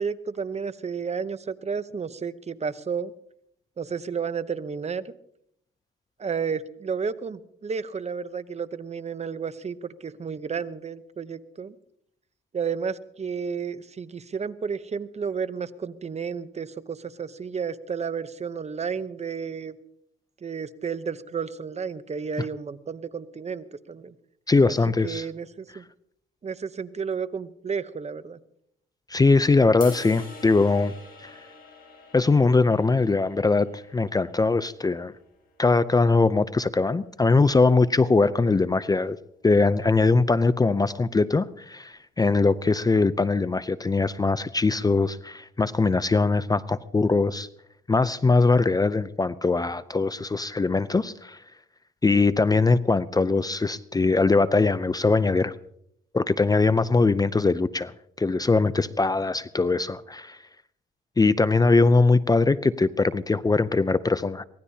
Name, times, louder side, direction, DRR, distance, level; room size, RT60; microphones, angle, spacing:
voice 1, 0.0-3.1 3.8-5.1 6.2-11.8 12.5-19.7 20.4-24.1 24.7-24.8 25.0-25.8 26.4-28.4, right 6 dB, 35° right, 14 dB, 0.8 m, -32 dB
voice 2, 24.5-25.3 29.1-30.9 31.2-31.4 32.1-35.1 35.6-39.2 39.4-47.5 47.9-51.4 52.0-55.5 56.1-57.9 58.2-60.4 61.2-64.4, left 3 dB, 20° left, 15 dB, 0.5 m, -21 dB
sound 1, 29.8-36.0, left 3 dB, 45° left, 7.1 m, -46 dB
24.0 x 18.0 x 2.8 m, 0.72 s
cardioid pair, 90°, 20 cm